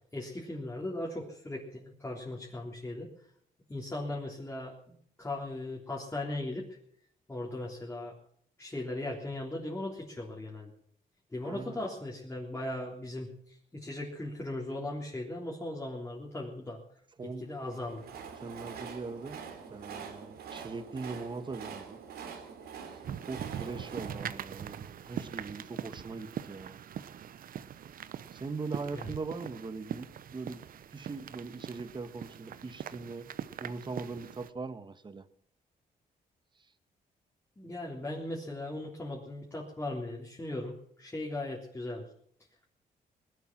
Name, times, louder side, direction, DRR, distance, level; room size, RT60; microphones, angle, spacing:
voice 1, 0.1-3.1 3.7-6.8 7.3-8.1 8.6-10.7 11.3-16.8 17.2-18.1 28.9-29.1 37.6-42.1, left 1 dB, 15° left, -3 dB, 3.5 m, -38 dB
voice 2, 11.4-11.8 17.2-17.5 18.4-19.4 19.7-22.0 23.2-26.8 28.3-30.6 30.9-33.3 33.6-35.2, right 4 dB, 30° right, 11 dB, 1.4 m, -40 dB
Train, 17.5-25.7, right 6 dB, 90° right, 2.9 m, -45 dB
sound 1, 23.0-34.5, right 9 dB, 65° right, 0.9 m, -42 dB
20.0 x 11.5 x 6.1 m, 0.66 s
cardioid pair, 105°, 16 cm